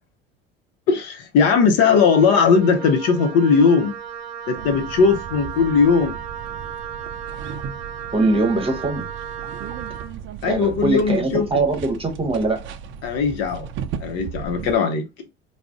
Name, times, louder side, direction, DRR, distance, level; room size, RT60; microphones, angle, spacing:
voice 1, 0.9-4.0 4.5-6.2 10.4-11.7 13.0-13.7 14.0-15.1, left 5 dB, 55° left, 0.7 m, -18 dB
Wind instrument woodwind instrument, 1.9-10.2, right 8 dB, 75° right, 0.7 m, -35 dB
sound 1, 4.6-14.8, right 8 dB, 40° right, 0.4 m, -36 dB
voice 2, 8.1-9.1 10.5-12.7, right 2 dB, 20° right, 0.9 m, -22 dB
2.4 x 2.0 x 3.5 m
hypercardioid pair, 70°, 30 cm